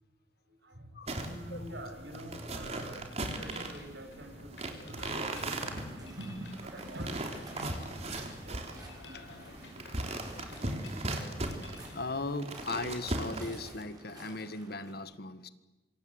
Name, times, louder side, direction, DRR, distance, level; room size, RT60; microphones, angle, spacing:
voice 1, 0.5-11.7, right 1 dB, 70° right, 5 dB, 6.4 m, -47 dB
sound 1, 1.1-13.8, right 2 dB, 35° right, 3.6 m, -38 dB
Mechanisms, 3.4-12.0, left 2 dB, 75° left, 6.2 m, -53 dB
Waves surf, 5.1-14.9, right 1 dB, 20° right, 7.5 m, -53 dB
voice 2, 8.6-9.8 11.5-15.5, left 2 dB, 60° left, 12 dB, 1.6 m, -39 dB
26.5 x 26.5 x 8.1 m, 1.2 s
head